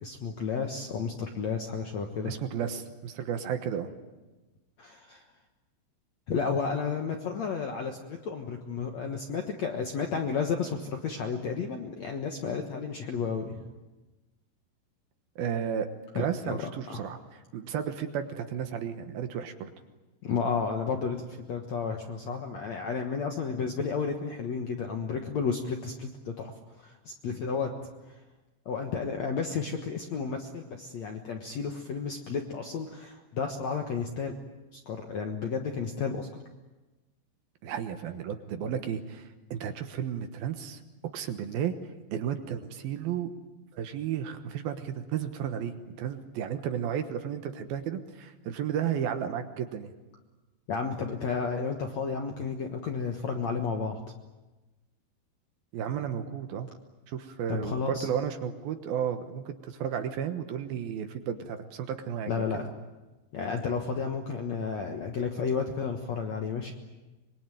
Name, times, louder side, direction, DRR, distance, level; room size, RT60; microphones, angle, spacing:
voice 1, 0.0-2.3 4.8-5.2 6.3-13.7 16.2-17.2 20.2-26.5 26.8-27.7 28.7-34.4 34.7-36.3 38.6-38.7 50.7-54.0 57.5-58.1 62.3-62.7 63.3-66.7, left 5 dB, 60° left, 4 dB, 1.8 m, -32 dB
voice 2, 2.3-3.9 15.4-15.9 16.1-19.7 37.6-40.8 41.1-41.7 42.1-43.3 43.7-49.9 55.7-56.7 57.1-62.4, right 8 dB, 70° right, 8 dB, 2.8 m, -33 dB
25.0 x 22.5 x 9.2 m, 1.1 s
omnidirectional pair, 5.0 m